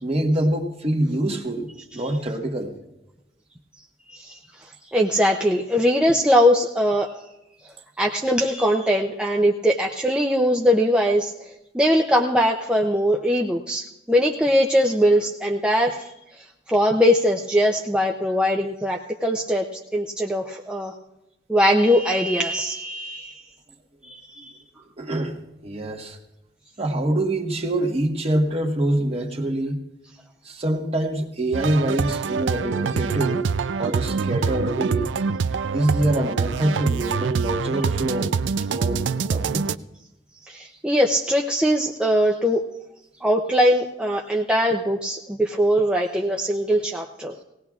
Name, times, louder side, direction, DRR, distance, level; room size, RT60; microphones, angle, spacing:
voice 1, 0.0-2.7 25.0-26.2 26.8-29.8 30.4-33.4 33.8-35.1 35.7-38.4 38.7-39.7, right 1 dB, 35° right, 2 dB, 1.3 m, -25 dB
voice 2, 4.9-7.1 8.0-11.3 11.7-16.1 16.7-19.7 19.9-20.9 21.5-23.4 24.0-24.5 40.5-42.6 43.2-47.3, equal, 5° right, 0 dB, 0.6 m, -21 dB
sound 1, 31.5-39.8, right 5 dB, 75° right, 0.4 m, -25 dB
18.5 x 18.0 x 2.4 m, 0.90 s
head